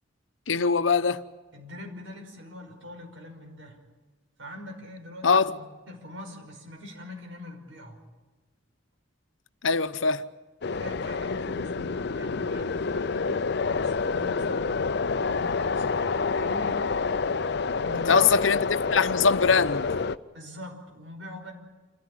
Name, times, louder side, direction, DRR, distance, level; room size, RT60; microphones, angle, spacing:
voice 1, 0.5-1.2 5.2-5.6 9.6-10.3 18.1-18.7 18.9-19.9, left 5 dB, 85° left, 0.9 m, -22 dB
voice 2, 1.5-3.8 4.4-8.0 10.7-16.1 16.3-16.8 17.8-18.4 20.3-21.5, left 1 dB, 85° right, 5.5 m, -42 dB
sound 1, 10.6-20.2, left 4 dB, 60° left, 0.6 m, -28 dB
27.5 x 15.0 x 8.8 m
head